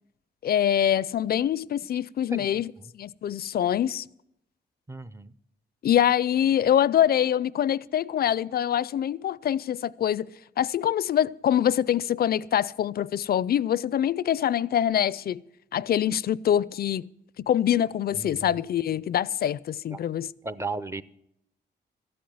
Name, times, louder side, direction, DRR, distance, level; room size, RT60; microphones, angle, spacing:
voice 1, 0.4-2.7 2.9-4.1 5.8-10.3 10.6-15.4 15.7-17.1 17.5-20.3, left 10 dB, 55° left, 0.4 m, -24 dB
voice 2, 2.3-2.9 4.9-5.3 18.1-18.6 19.9-20.0 20.4-21.0, right 3 dB, 15° right, 0.5 m, -36 dB
13.5 x 8.6 x 7.8 m
cardioid pair, 110°, 19 cm